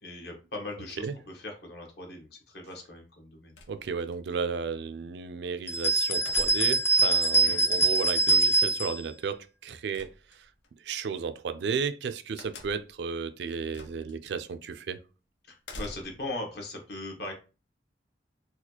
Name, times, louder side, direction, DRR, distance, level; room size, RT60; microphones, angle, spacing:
voice 1, 0.0-3.5 7.4-7.6 15.5-17.3, left 2 dB, 65° left, 1.1 m, -39 dB
sound 1, 3.5-4.2 6.2-6.9 9.9-10.7 12.4-13.0 13.7-14.1 14.5-14.6 15.6-16.3, left 2 dB, 90° left, 0.7 m, -44 dB
voice 2, 3.7-10.5 10.8-15.0, right 5 dB, 70° right, 0.3 m, -34 dB
sound 2, 5.7-9.0, right 3 dB, 15° left, 0.4 m, -24 dB
4.1 x 2.4 x 2.8 m
head